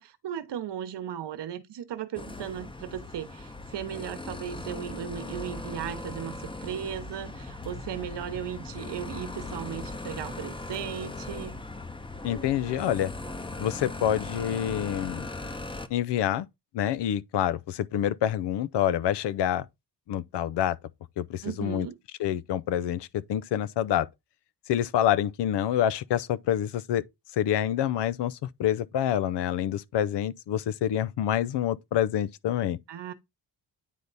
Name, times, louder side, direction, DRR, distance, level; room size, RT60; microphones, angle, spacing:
voice 1, 0.0-11.6 21.4-21.9 32.9-33.1, right 9 dB, 80° right, 1.0 m, -36 dB
sound 1, 2.1-15.9, left 2 dB, 15° left, 0.7 m, -39 dB
voice 2, 12.2-13.1 13.6-15.3 15.9-16.5 16.7-19.7 20.1-20.8 21.2-21.9 22.2-24.1 24.7-27.0 27.3-32.8, left 11 dB, 85° left, 0.6 m, -27 dB
9.3 x 3.4 x 4.0 m
cardioid pair, 90°, 41 cm